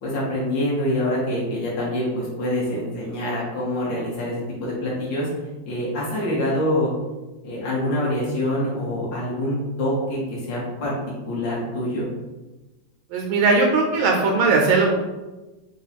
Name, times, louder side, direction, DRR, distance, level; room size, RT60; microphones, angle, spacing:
voice 1, 0.0-5.3 5.7-6.9 7.4-11.0 11.3-12.1, left 1 dB, 60° left, -6 dB, 1.8 m, -25 dB
voice 2, 13.1-14.9, right 3 dB, 75° right, 1 dB, 1.3 m, -19 dB
4.4 x 2.3 x 4.0 m, 1.1 s
omnidirectional pair, 2.3 m